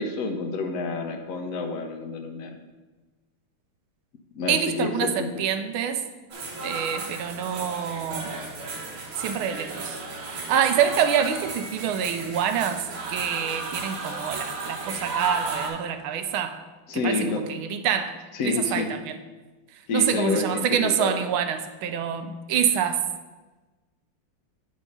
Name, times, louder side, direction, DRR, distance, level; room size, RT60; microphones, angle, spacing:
voice 1, 0.0-2.6 4.3-5.4 16.9-17.4 18.3-18.9 19.9-21.2, left 3 dB, 75° left, 4 dB, 0.7 m, -28 dB
voice 2, 4.5-6.0 6.6-8.4 9.2-10.0 10.3-16.6 16.9-18.2 18.4-19.2 19.9-23.0, right 8 dB, 85° right, 8 dB, 1.5 m, -26 dB
sound 1, 6.3-15.7, right 3 dB, 65° right, 2.0 m, -34 dB
8.3 x 4.8 x 5.2 m, 1.2 s
omnidirectional pair, 2.4 m